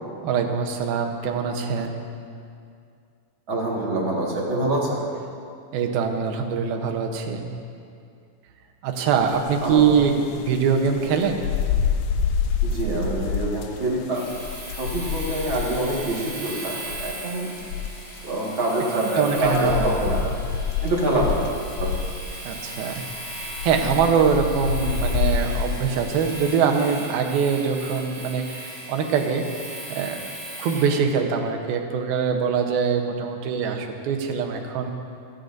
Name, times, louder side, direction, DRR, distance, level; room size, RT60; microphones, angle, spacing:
voice 1, 0.2-2.0 5.7-7.5 8.8-11.5 18.9-19.9 20.2-20.3 22.4-23.1 23.4-29.4 29.9-30.2 30.6-34.9, right 6 dB, 90° right, 3 dB, 2.9 m, -23 dB
voice 2, 3.5-5.0 9.6-9.8 12.6-14.3 14.7-17.6 18.2-20.2 20.8-21.4 21.8-21.9, right 1 dB, 45° right, -4 dB, 2.0 m, -25 dB
sound 1, 9.1-27.0, left 6 dB, 75° left, 1.8 m, -28 dB
Domestic sounds home sounds, 14.1-30.9, right 1 dB, 20° right, 3.8 m, -38 dB
28.0 x 10.0 x 2.6 m, 2.4 s
omnidirectional pair, 4.2 m